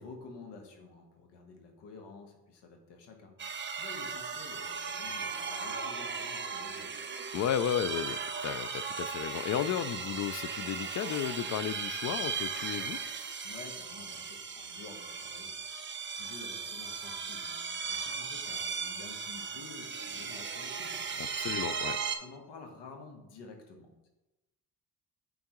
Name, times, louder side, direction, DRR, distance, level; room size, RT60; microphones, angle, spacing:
voice 1, 0.0-3.3 3.7-6.9 13.4-21.3 21.5-24.1, left 4 dB, 80° left, 3 dB, 1.2 m, -50 dB
sound 1, 3.4-22.2, right 5 dB, 25° right, 0.6 m, -37 dB
voice 2, 7.3-13.0 21.2-22.0, left 9 dB, 45° left, 15 dB, 0.4 m, -33 dB
8.7 x 3.8 x 3.0 m, 1.0 s
supercardioid pair, 60°, 41 cm